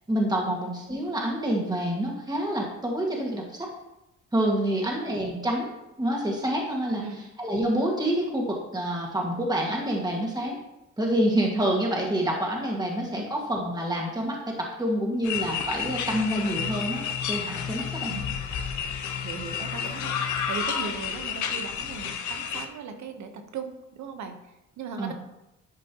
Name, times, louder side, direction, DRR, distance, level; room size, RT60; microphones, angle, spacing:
voice 1, 0.1-3.7 4.3-5.7 6.0-7.0 7.4-10.6 11.0-18.2 25.0-25.1, right 1 dB, 15° right, -1 dB, 1.8 m, -27 dB
voice 2, 4.6-4.9 6.9-7.2 13.1-13.2 18.1-18.4 19.2-25.1, right 5 dB, 65° right, 6 dB, 1.1 m, -38 dB
sound 1, 15.2-22.7, left 7 dB, 75° left, 0.9 m, -31 dB
11.5 x 5.2 x 3.0 m, 0.91 s
cardioid pair, 90°, 30 cm